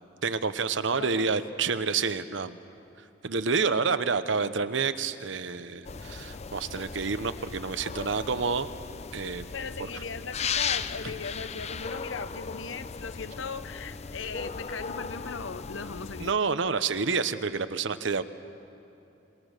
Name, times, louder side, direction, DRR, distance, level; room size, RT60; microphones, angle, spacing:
voice 1, 0.2-2.6 3.2-8.7 9.1-9.5 16.2-18.2, right 5 dB, 70° right, 12 dB, 0.9 m, -28 dB
voice 2, 0.9-1.3 9.5-16.4, left 5 dB, 80° left, 12 dB, 0.9 m, -38 dB
sound 1, 5.8-16.3, left 6 dB, 35° left, 0.5 m, -37 dB
27.5 x 23.0 x 6.6 m, 2.8 s
head